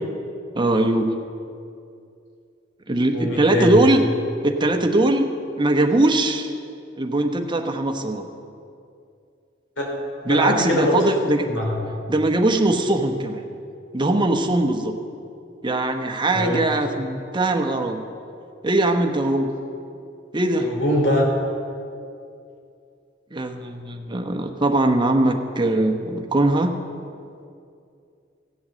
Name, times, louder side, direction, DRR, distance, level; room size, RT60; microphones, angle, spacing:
voice 1, 0.6-1.1 2.9-4.0 4.4-5.3 5.6-6.5 7.0-8.3 10.3-11.4 12.1-13.4 13.9-14.9 15.6-18.0 18.6-19.5 20.3-20.7 23.3-26.8, right 2 dB, 25° right, 4 dB, 1.0 m, -21 dB
voice 2, 3.1-3.8 9.8-9.9 10.3-11.0 11.4-11.8 16.3-16.6 20.6-21.3, left 1 dB, 70° left, -1 dB, 3.3 m, -22 dB
15.5 x 7.9 x 7.4 m, 2.5 s
head